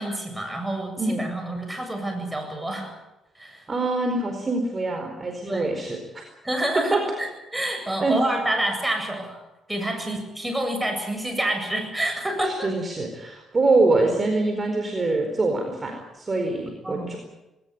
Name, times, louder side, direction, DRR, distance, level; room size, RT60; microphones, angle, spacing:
voice 1, 0.0-2.9 3.3-3.7 5.4-5.7 6.4-9.4 9.7-12.7 16.8-17.2, right 1 dB, 10° right, 4 dB, 7.8 m, -28 dB
voice 2, 3.7-6.2 6.9-7.0 8.0-8.2 12.6-17.2, right 2 dB, 30° right, 3 dB, 4.5 m, -24 dB
20.0 x 18.5 x 9.5 m, 0.98 s
cardioid pair, 90°, 0 cm